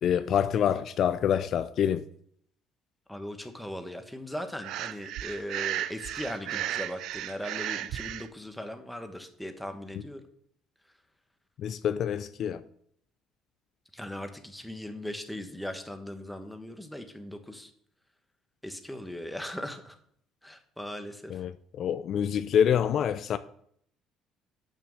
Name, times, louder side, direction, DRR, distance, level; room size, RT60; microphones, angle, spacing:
voice 1, 0.0-2.0 11.6-12.6 21.3-23.4, left 9 dB, 60° left, 0.4 m, -26 dB
voice 2, 3.1-10.2 13.9-17.7 18.6-20.0 20.4-21.4, left 1 dB, 5° left, 1.3 m, -39 dB
Breathing, 4.6-8.3, right 12 dB, 75° right, 0.4 m, -34 dB
6.8 x 6.3 x 6.5 m
supercardioid pair, 90°, 0 cm